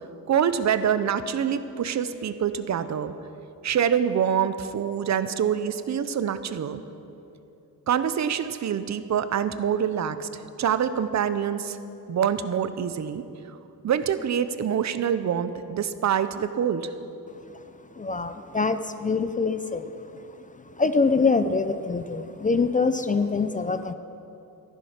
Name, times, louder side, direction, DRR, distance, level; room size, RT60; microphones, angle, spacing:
voice 1, 0.3-3.1 3.6-6.8 7.9-10.3 10.6-11.8 12.1-13.2 13.8-16.9, right 8 dB, 50° right, 12 dB, 0.7 m, -25 dB
voice 2, 18.0-23.9, left 4 dB, 25° left, 10 dB, 0.4 m, -25 dB
14.0 x 11.0 x 5.7 m, 2.9 s
wide cardioid pair, 140°, 36 cm